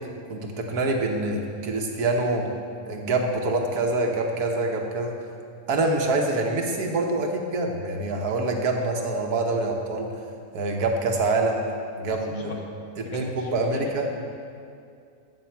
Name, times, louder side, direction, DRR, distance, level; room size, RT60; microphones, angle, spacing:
voice 1, 0.3-2.5 2.9-5.1 5.7-10.1 10.5-11.7 12.0-12.5 13.0-14.1, right 2 dB, 85° right, 2 dB, 1.6 m, -25 dB
voice 2, 12.2-12.6 13.0-14.1, left 2 dB, 65° left, 0 dB, 1.7 m, -40 dB
14.5 x 6.0 x 4.5 m, 2.4 s
omnidirectional pair, 1.6 m